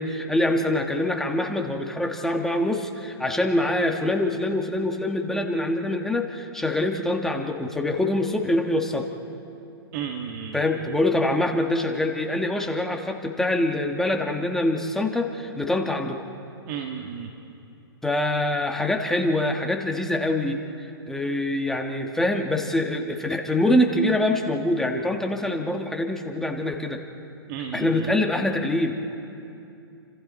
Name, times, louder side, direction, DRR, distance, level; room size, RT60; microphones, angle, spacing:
voice 1, 0.0-9.1 10.5-16.2 18.0-20.6 21.1-27.0 27.7-28.9, left 1 dB, 5° left, 3 dB, 1.4 m, -24 dB
voice 2, 9.9-10.6 16.7-17.3 27.5-28.1, right 8 dB, 40° right, 2 dB, 1.8 m, -33 dB
29.5 x 26.5 x 4.2 m, 2.7 s
hypercardioid pair, 140°, 13 cm